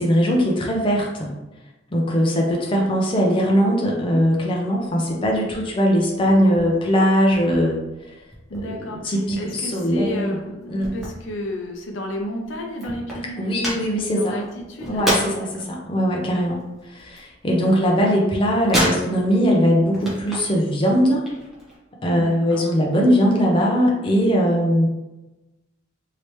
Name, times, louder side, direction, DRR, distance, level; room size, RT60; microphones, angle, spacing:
voice 1, 0.0-1.3 1.9-7.8 8.6-8.7 9.0-10.4 10.7-10.9 13.4-14.3 14.9-16.6 16.9-21.2 22.0-24.9, equal, 25° left, -2 dB, 0.5 m, -20 dB
sound 1, 4.9-5.6 5.9-7.6 8.0-8.9 9.3-11.9 12.2-12.3 12.4-15.6 15.9-17.9 18.1-19.5 19.8-20.6 20.9-21.8, equal, ahead, 0.9 m, -29 dB
voice 2, 8.5-13.5 13.9-15.7 22.2-22.6, left 1 dB, 75° left, 2 dB, 0.6 m, -32 dB
3.2 x 2.8 x 3.1 m, 1.0 s
head